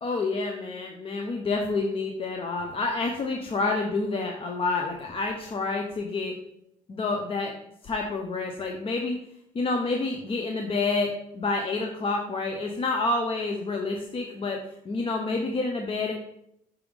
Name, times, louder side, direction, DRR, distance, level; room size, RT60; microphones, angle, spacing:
voice 1, 0.0-6.3 6.9-7.5 7.8-9.2 9.5-14.6 14.8-16.1, left 3 dB, 35° left, 2 dB, 0.7 m, -28 dB
6.0 x 3.5 x 5.0 m, 0.78 s
cardioid pair, 110°, 17 cm